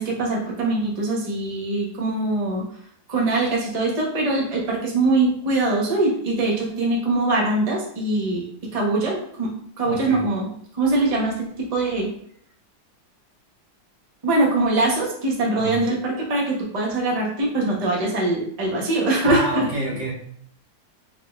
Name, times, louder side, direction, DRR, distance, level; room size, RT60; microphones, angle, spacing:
voice 1, 0.0-2.7 3.1-8.4 8.7-10.5 10.7-12.1 14.2-19.7, right 2 dB, 30° right, -3 dB, 0.7 m, -22 dB
voice 2, 9.8-10.2 15.6-15.8 19.2-20.1, right 1 dB, 90° right, -6 dB, 2.4 m, -27 dB
4.1 x 3.8 x 2.3 m, 0.64 s
omnidirectional pair, 2.0 m